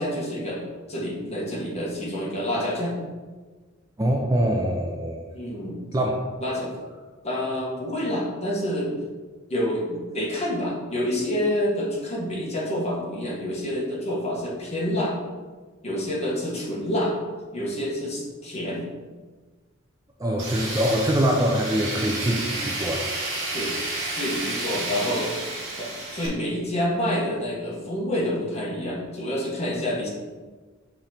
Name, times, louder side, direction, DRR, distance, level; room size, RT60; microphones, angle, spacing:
voice 1, 0.0-3.0 5.3-5.8 6.4-6.7 7.2-9.0 9.5-15.2 15.8-17.2 17.5-18.8 23.5-25.3 25.7-30.1, equal, 30° left, -5 dB, 1.5 m, -28 dB
voice 2, 4.0-5.3 5.9-6.2 20.2-23.1, equal, 15° right, 0 dB, 0.4 m, -24 dB
Tools, 20.4-26.3, right 2 dB, 55° right, 1.7 m, -31 dB
5.6 x 3.8 x 4.4 m, 1.4 s
head